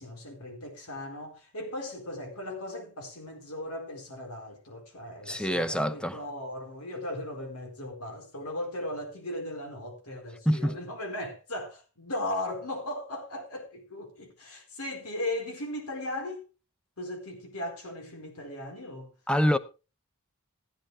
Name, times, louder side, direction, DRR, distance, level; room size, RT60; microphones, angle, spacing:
voice 1, 0.0-16.4 17.0-19.1, left 1 dB, 80° left, 4.3 m, -37 dB
voice 2, 5.2-6.2 10.5-10.8 19.3-19.6, equal, 5° left, 0.8 m, -26 dB
14.5 x 11.5 x 3.3 m
head